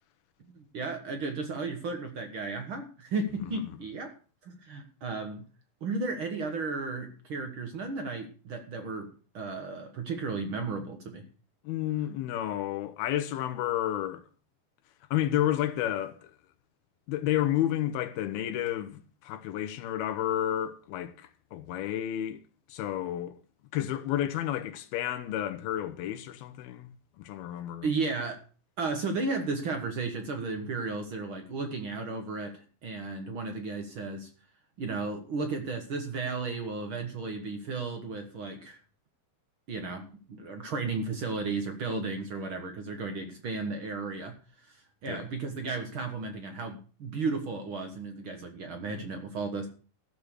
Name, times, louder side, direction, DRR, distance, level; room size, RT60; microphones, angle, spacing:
voice 1, 0.5-4.1 4.4-5.4 5.8-11.2 27.8-28.4 28.8-34.3 34.8-38.8 39.7-44.3 45.0-49.7, right 3 dB, 60° right, 1.4 m, -34 dB
voice 2, 11.6-14.2 15.1-16.3 17.1-22.4 22.7-23.4 23.7-26.9 27.2-27.9 45.1-45.2, left 12 dB, 85° left, 2.9 m, -31 dB
14.0 x 6.8 x 6.4 m
omnidirectional pair, 4.3 m